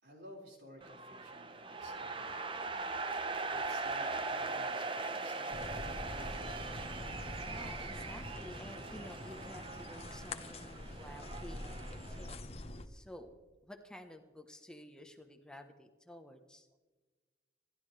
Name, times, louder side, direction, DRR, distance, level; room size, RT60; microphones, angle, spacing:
voice 1, 0.0-2.6 3.5-6.8, equal, 85° right, -1 dB, 5.2 m, -56 dB
sound 1, 0.8-12.3, right 3 dB, 30° right, 0.8 m, -41 dB
sound 2, 5.5-12.9, left 1 dB, 35° left, 1.0 m, -45 dB
voice 2, 7.4-12.5 12.8-13.3 13.6-16.7, equal, 5° left, 5 dB, 1.1 m, -52 dB
28.0 x 12.5 x 3.4 m, 1.3 s
head